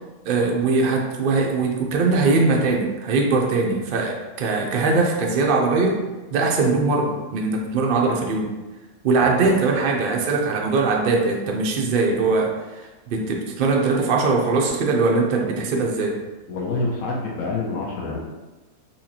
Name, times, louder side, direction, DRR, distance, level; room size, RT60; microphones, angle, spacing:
voice 1, 0.2-6.0 6.3-8.5 9.0-16.2, right 3 dB, 70° right, 0 dB, 0.5 m, -21 dB
voice 2, 16.5-18.2, left 3 dB, 80° left, -2 dB, 1.2 m, -27 dB
4.4 x 2.8 x 2.8 m, 1.2 s
omnidirectional pair, 1.5 m